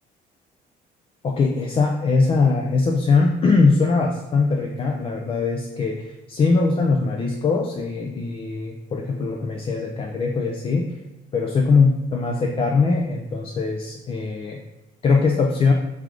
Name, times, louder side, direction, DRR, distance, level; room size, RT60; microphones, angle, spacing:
voice 1, 1.2-10.9 11.3-14.6 15.0-15.7, left 4 dB, 35° left, 1 dB, 0.4 m, -21 dB
3.4 x 3.4 x 3.7 m, 0.99 s
cardioid pair, 110°, 17 cm